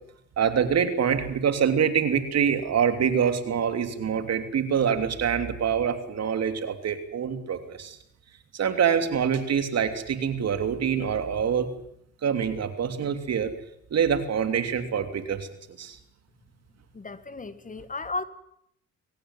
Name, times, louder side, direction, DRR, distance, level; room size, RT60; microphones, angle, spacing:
voice 1, 0.4-8.0 8.5-11.7 12.2-13.5 13.9-15.5 15.8-16.0, right 7 dB, 60° right, 3.1 m, -25 dB
voice 2, 16.9-18.2, left 3 dB, 25° left, 1.7 m, -34 dB
23.0 x 18.0 x 9.8 m
cardioid pair, 90°, 30 cm